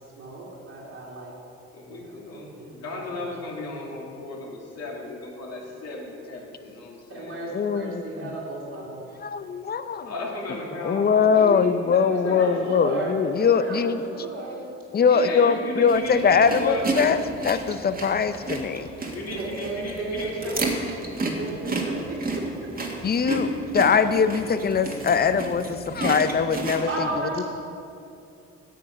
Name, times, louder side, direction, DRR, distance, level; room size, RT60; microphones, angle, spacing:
voice 1, 0.2-1.3 1.9-2.1 2.5-3.4 7.1-9.0 12.1-14.6 19.3-20.6 21.4-22.7 26.9-27.4, right 2 dB, 55° right, -7 dB, 2.5 m, -34 dB
voice 2, 1.7-7.4 10.0-12.6 15.0-16.9 19.1-20.7, left 2 dB, 55° left, -2 dB, 2.5 m, -35 dB
voice 3, 7.5-8.0 9.2-10.1 10.8-14.2 14.9-17.2 17.4-18.9 23.0-27.4, left 6 dB, 35° left, 12 dB, 0.6 m, -22 dB
sound 1, 15.9-26.8, right 2 dB, 30° right, 1.7 m, -31 dB
9.3 x 7.6 x 5.7 m, 2.6 s
supercardioid pair, 65°, 30 cm